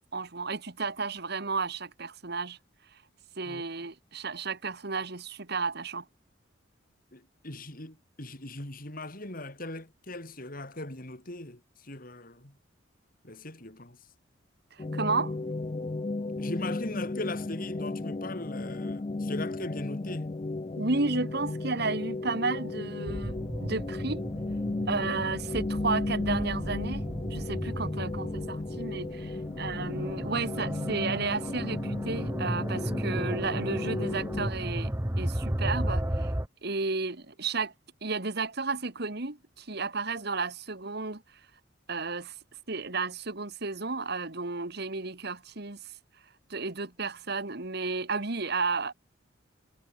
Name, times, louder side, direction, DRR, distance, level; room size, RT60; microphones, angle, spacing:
voice 1, 0.1-2.6 3.4-6.0 14.7-15.4 20.8-24.2 24.8-34.9 35.2-36.3 36.6-37.7 38.0-41.2 41.9-42.3 42.7-45.8 46.5-48.9, right 4 dB, 55° right, 1.8 m, -32 dB
voice 2, 7.1-12.6 13.2-14.0 16.4-20.3 25.0-25.2, left 2 dB, 45° left, 4.5 m, -39 dB
sound 1, 14.8-34.5, left 2 dB, 30° left, 0.4 m, -34 dB
sound 2, 23.1-36.5, right 1 dB, 15° right, 1.1 m, -34 dB
head